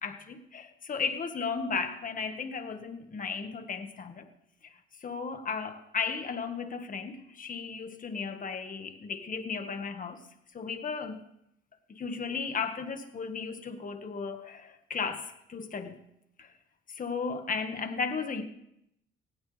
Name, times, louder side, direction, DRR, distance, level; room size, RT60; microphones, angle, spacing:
voice 1, 0.0-4.2 5.0-10.2 10.5-11.2 11.9-16.0 16.4-16.5 16.9-18.4, left 5 dB, 45° left, 1.8 m, -35 dB
18.0 x 16.5 x 3.5 m
cardioid pair, 90°, 20 cm